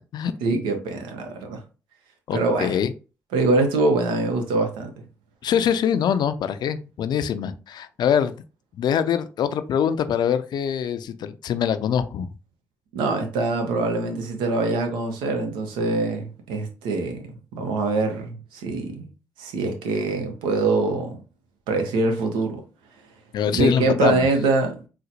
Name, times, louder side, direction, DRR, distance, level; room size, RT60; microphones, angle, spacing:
voice 1, 0.4-1.6 2.3-2.8 3.3-4.9 12.9-19.1 19.4-21.2 21.7-22.6 23.5-24.8, right 3 dB, 80° right, 0.6 m, -24 dB
voice 2, 2.3-2.9 5.4-8.3 8.8-12.3 23.3-24.3, left 8 dB, 60° left, 0.3 m, -23 dB
4.0 x 2.1 x 2.7 m
hypercardioid pair, 45°, 8 cm